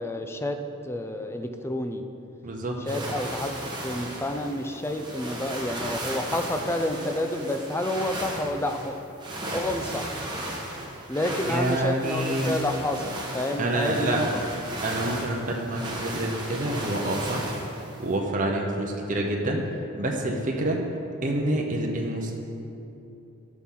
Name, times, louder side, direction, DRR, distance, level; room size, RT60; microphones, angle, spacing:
voice 1, 0.0-2.0 2.9-9.0 9.5-10.1 11.1-14.2, left 1 dB, 10° left, 6 dB, 0.4 m, -29 dB
voice 2, 2.4-2.8 11.5-12.5 13.6-14.5 14.8-17.5 18.0-19.6 20.0-20.8 21.2-22.3, right 1 dB, 35° right, 0 dB, 0.7 m, -27 dB
sound 1, 2.9-18.1, right 1 dB, 20° right, 1.1 m, -35 dB
12.5 x 5.9 x 3.8 m, 2.7 s
head